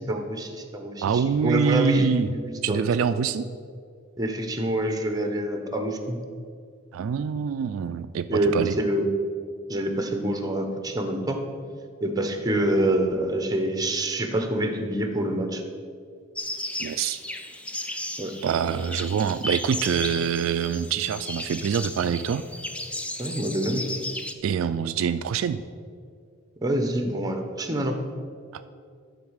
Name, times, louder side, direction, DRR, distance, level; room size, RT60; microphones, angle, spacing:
voice 1, 0.0-2.8 4.2-6.2 8.3-9.1 9.7-11.4 12.0-15.6 18.2-18.3 23.2-23.8 26.6-28.0, right 1 dB, 20° right, 5 dB, 0.8 m, -26 dB
voice 2, 1.0-2.3 2.6-3.5 6.9-8.7 16.8-17.2 18.4-22.5 24.4-25.6 28.5-28.7, right 7 dB, 75° right, 11 dB, 0.3 m, -25 dB
sound 1, 16.4-24.3, left 1 dB, 5° left, 0.4 m, -35 dB
12.0 x 4.0 x 6.4 m, 2.2 s
head